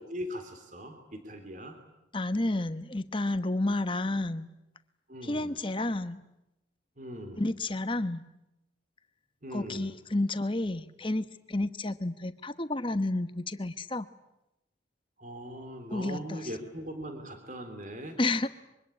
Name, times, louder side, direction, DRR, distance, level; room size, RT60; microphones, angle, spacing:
voice 1, 0.0-1.8 5.1-5.6 7.0-7.4 9.4-9.9 15.2-18.2, equal, 40° right, 6 dB, 3.3 m, -40 dB
voice 2, 2.1-4.5 5.2-6.2 7.4-8.2 9.5-14.1 15.9-16.5 18.2-18.5, left 2 dB, 25° left, 11 dB, 1.1 m, -31 dB
25.5 x 24.0 x 9.8 m, 0.89 s
head